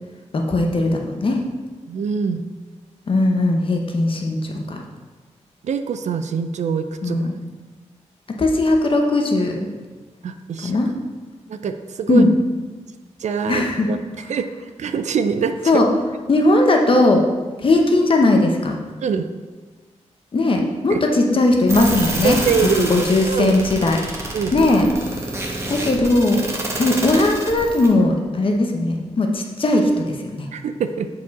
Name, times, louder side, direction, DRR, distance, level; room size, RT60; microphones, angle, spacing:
voice 1, 0.3-1.4 3.1-4.8 7.0-7.3 8.3-9.7 10.6-10.9 12.1-12.3 13.5-13.9 15.7-15.9 16.3-17.2 17.6-18.8 20.3-22.4 22.9-24.0 24.5-24.8 25.2-25.3 25.7-26.5 26.8-30.5, left 2 dB, 50° left, 2 dB, 1.0 m, -18 dB
voice 2, 1.9-2.4 5.6-7.3 10.2-10.8 11.5-12.2 13.2-14.0 14.3-14.5 14.8-15.6 19.0-19.3 20.9-21.0 22.2-22.9 23.3-23.6 24.3-24.7 30.5-31.1, right 6 dB, 75° right, 9 dB, 0.5 m, -23 dB
sound 1, 21.7-27.9, right 2 dB, 20° right, 1.2 m, -28 dB
7.1 x 4.8 x 4.1 m, 1.3 s
wide cardioid pair, 100°, 12 cm